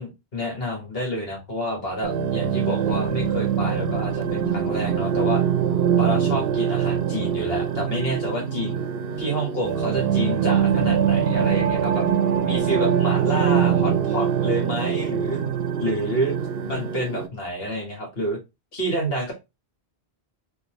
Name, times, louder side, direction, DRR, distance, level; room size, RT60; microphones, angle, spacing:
voice 1, 0.0-5.4 6.0-8.9 9.2-12.1 12.4-15.4 15.8-16.4 16.7-18.4 18.7-19.3, equal, 60° left, 0 dB, 1.6 m, -29 dB
sound 1, 2.0-17.3, right 8 dB, 65° right, 0.8 m, -23 dB
3.8 x 2.7 x 2.9 m, 0.24 s
omnidirectional pair, 1.1 m